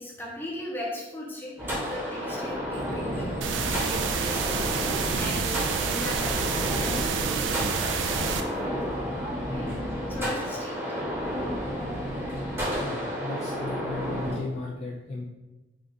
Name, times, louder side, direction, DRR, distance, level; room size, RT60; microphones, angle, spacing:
voice 1, 0.0-4.6 5.2-8.7 9.5-10.8, left 1 dB, 10° left, -4 dB, 0.7 m, -38 dB
sound 1, 1.6-14.3, equal, 15° right, 0.9 m, -31 dB
sound 2, 3.4-8.4, right 5 dB, 85° right, 0.4 m, -28 dB
voice 2, 9.5-10.5 12.8-15.2, left 3 dB, 35° left, -2 dB, 0.3 m, -36 dB
3.9 x 2.4 x 3.4 m, 1.1 s
head